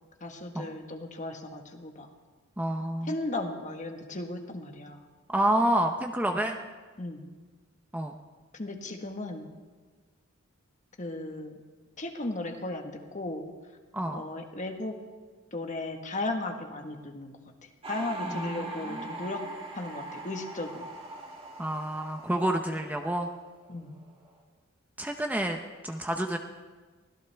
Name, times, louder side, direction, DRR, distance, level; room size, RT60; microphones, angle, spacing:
voice 1, 0.2-2.1 3.1-5.0 7.0-7.2 8.5-9.5 11.0-11.6 12.0-13.4 14.1-15.0 15.5-17.3 17.9-19.4 19.7-20.9 23.7-23.9, left 2 dB, 35° left, 4 dB, 1.4 m, -36 dB
voice 2, 2.6-3.2 5.3-6.6 7.9-8.2 13.9-14.2 18.2-19.1 21.6-23.3 25.0-25.6 25.8-26.4, right 1 dB, 10° right, 4 dB, 0.7 m, -29 dB
sound 1, 17.8-23.7 23.9-24.4, right 2 dB, 30° right, 2.4 m, -41 dB
24.0 x 16.5 x 3.5 m, 1.4 s
head